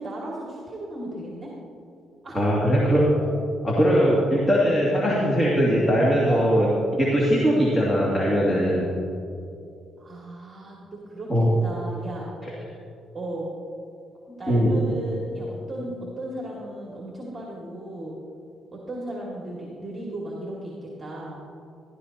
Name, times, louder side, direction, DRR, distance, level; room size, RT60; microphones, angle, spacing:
voice 1, 0.0-1.5 2.2-2.4 3.2-3.3 6.2-6.4 7.6-7.7 10.0-10.8 11.1-12.3 13.1-13.5 14.3-18.2 18.7-21.4, right 1 dB, 25° right, -4 dB, 2.3 m, -35 dB
voice 2, 2.3-3.0 3.6-8.9 11.3-11.5 12.4-12.5 14.5-14.8, equal, 20° left, -5 dB, 2.4 m, -20 dB
15.5 x 13.0 x 2.9 m, 2.6 s
cardioid pair, 90°, 0 cm